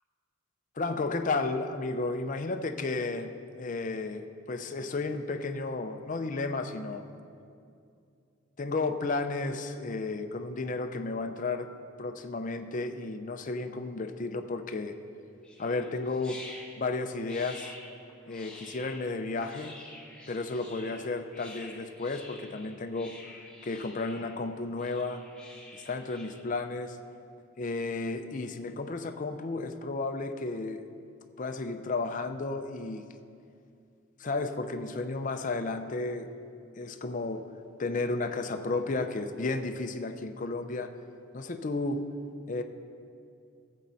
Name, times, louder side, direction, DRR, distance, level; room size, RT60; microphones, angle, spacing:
voice 1, 0.8-7.0 8.6-11.7 12.0-14.9 15.6-16.4 16.8-17.7 18.3-19.8 20.3-23.2 23.6-25.2 25.7-27.0 27.6-30.8 31.4-33.0 34.2-36.3 36.8-37.4 37.8-40.9 41.3-42.0 42.5-42.6, left 3 dB, 40° left, 7 dB, 0.5 m, -33 dB
sound 1, 15.4-26.4, left 1 dB, 5° left, 1.0 m, -49 dB
15.5 x 7.4 x 4.0 m, 2.5 s
head